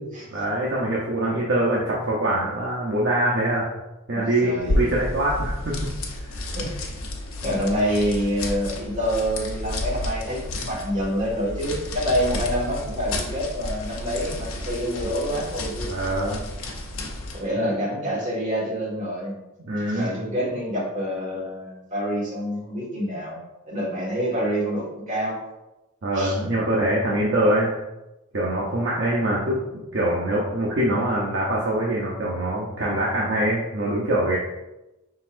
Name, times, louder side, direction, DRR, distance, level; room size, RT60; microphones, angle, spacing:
voice 1, 0.3-3.7 4.1-5.8 6.2-6.4 15.8-16.4 17.5-17.7 19.6-20.2 26.0-27.7 28.3-34.4, right 1 dB, 55° right, -5 dB, 0.8 m, -24 dB
voice 2, 4.1-4.9 6.5-6.7 7.4-16.0 17.3-19.4 19.9-25.4 26.1-26.4, equal, 40° right, -4 dB, 1.6 m, -27 dB
sound 1, 4.6-17.5, left 1 dB, 85° left, 0.9 m, -31 dB
5.3 x 3.9 x 2.5 m, 0.99 s
head